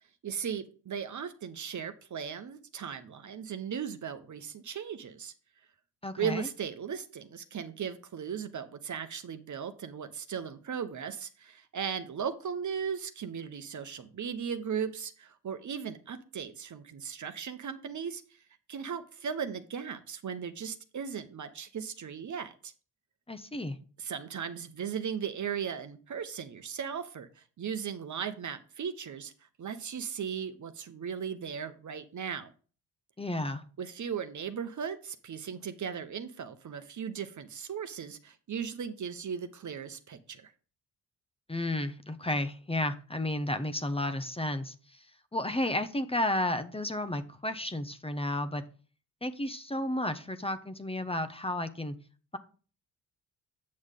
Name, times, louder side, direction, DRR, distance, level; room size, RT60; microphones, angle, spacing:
voice 1, 0.2-5.3 6.2-18.2 18.7-22.7 24.0-29.3 29.6-32.5 33.8-40.5, right 7 dB, 45° right, 9 dB, 1.0 m, -37 dB
voice 2, 6.0-6.5 23.3-23.8 33.2-33.6 41.5-45.1 45.3-48.6 49.2-52.0, left 1 dB, 15° left, 10 dB, 1.0 m, -32 dB
8.6 x 6.3 x 3.7 m, 0.39 s
supercardioid pair, 55°, 41 cm